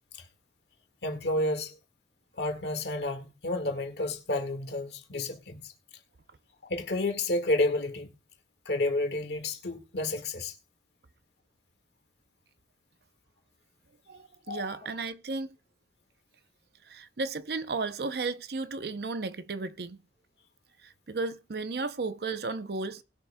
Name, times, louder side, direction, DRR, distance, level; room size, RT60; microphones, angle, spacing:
voice 1, 1.0-1.8 2.4-5.7 6.6-8.1 8.7-10.6 14.5-14.7, left 2 dB, 70° left, 1.7 m, -30 dB
voice 2, 14.1-15.5 16.9-20.0 21.1-23.0, right 3 dB, 60° right, 0.6 m, -34 dB
20.0 x 6.9 x 2.2 m
head